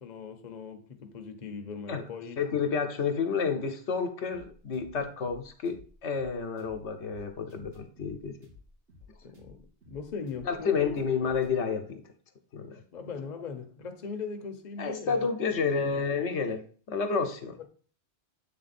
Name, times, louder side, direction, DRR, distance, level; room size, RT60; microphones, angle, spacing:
voice 1, 0.0-2.4 9.2-9.6 9.9-10.9 12.9-15.3 15.6-16.0, left 5 dB, 45° left, 0.8 m, -40 dB
voice 2, 2.4-8.4 10.5-12.0 12.5-12.8 14.8-17.6, left 5 dB, 80° left, 1.1 m, -30 dB
sound 1, 4.3-11.5, left 3 dB, 80° right, 2.4 m, -55 dB
7.7 x 3.6 x 4.1 m
omnidirectional pair, 1.2 m